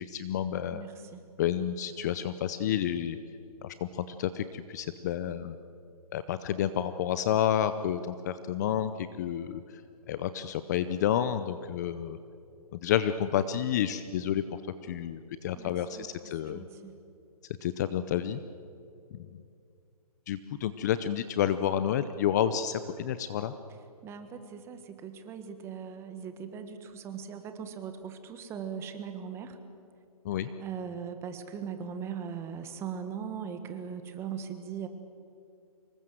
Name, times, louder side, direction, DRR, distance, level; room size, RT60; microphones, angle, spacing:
voice 1, 0.0-0.8 1.4-3.2 3.6-5.5 6.1-9.6 10.1-12.2 12.7-14.4 14.8-16.6 17.6-18.4 20.3-23.5 30.2-30.5, left 10 dB, 25° left, 12 dB, 0.7 m, -30 dB
voice 2, 0.7-1.2 15.5-17.0 24.0-29.6 30.6-34.9, right 7 dB, 15° right, 8 dB, 1.4 m, -40 dB
25.5 x 22.0 x 7.7 m, 2.5 s
hypercardioid pair, 155°, 20 cm